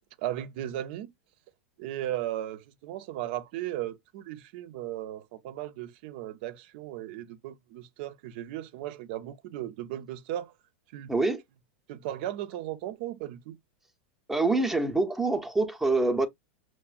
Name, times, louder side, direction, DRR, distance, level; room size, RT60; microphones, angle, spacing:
voice 1, 0.2-1.1 1.8-10.5 10.9-11.1 11.9-13.6, right 13 dB, 60° right, 0.6 m, -36 dB
voice 2, 11.1-11.4 14.3-16.3, right 3 dB, 5° right, 0.7 m, -25 dB
5.9 x 2.1 x 2.4 m
hypercardioid pair, 120°, 6 cm